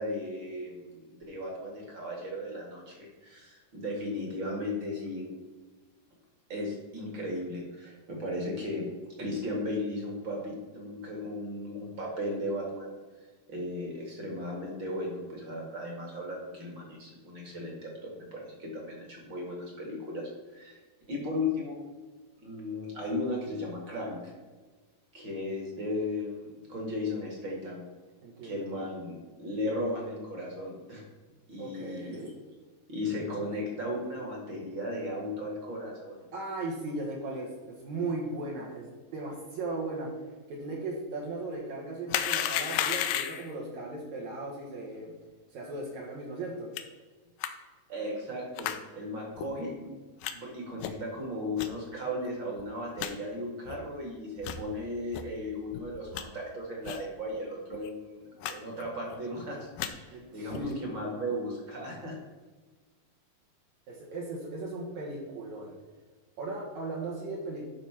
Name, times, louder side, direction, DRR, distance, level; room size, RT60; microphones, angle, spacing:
voice 1, 0.0-5.3 6.5-8.9 9.2-13.0 13.5-20.8 21.1-21.8 22.4-24.3 25.1-27.9 28.4-31.0 31.5-32.2 32.9-36.3 47.9-50.0 50.3-62.1, left 1 dB, 40° right, -1 dB, 2.2 m, -36 dB
voice 2, 28.2-28.6 31.6-32.3 36.3-40.1 40.5-45.1 45.5-46.7 60.1-60.8 63.9-65.7 66.4-67.6, right 2 dB, 60° right, -3 dB, 2.6 m, -37 dB
sound 1, 42.1-43.5 46.8-46.9 47.4-47.5 48.6-48.8 49.4-49.5 50.2-50.3 50.8-51.1 51.6-51.7 52.2-52.3 52.6-52.7 53.0-53.1 53.7-53.8 54.4-54.6 55.1-55.2 55.7-56.2 56.8-57.1 57.3-57.4 57.7-57.9 58.4-58.5 58.8-59.2 59.6-59.9 60.5-60.7, left 10 dB, 80° left, 2.2 m, -33 dB
12.0 x 4.2 x 5.8 m, 1.4 s
omnidirectional pair, 4.0 m